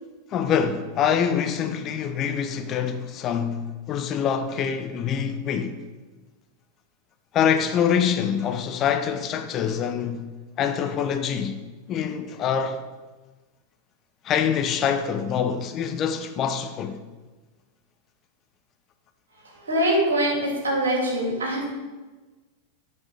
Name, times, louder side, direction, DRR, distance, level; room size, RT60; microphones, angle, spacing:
voice 1, 0.3-5.8 7.3-11.6 11.9-12.8 14.2-17.0, left 8 dB, 30° left, 0.8 m, -25 dB
voice 2, 19.3-21.6, right 1 dB, 70° right, 3.0 m, -24 dB
8.0 x 5.9 x 7.5 m
figure-of-eight pair, 90°, 0 cm